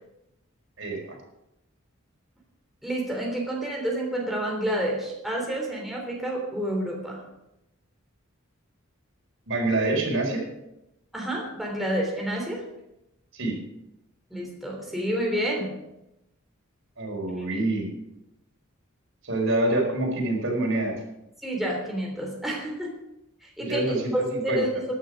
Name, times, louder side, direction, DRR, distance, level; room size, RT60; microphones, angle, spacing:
voice 1, 0.8-1.2 9.5-10.4 13.3-13.6 17.0-17.9 19.2-21.0 23.6-24.6, right 2 dB, 65° right, 0 dB, 4.5 m, -26 dB
voice 2, 2.8-7.2 11.1-12.6 14.3-15.7 17.4-17.6 21.4-22.9 23.4-24.7, right 1 dB, ahead, -2 dB, 3.3 m, -29 dB
14.0 x 11.0 x 5.2 m, 0.88 s
head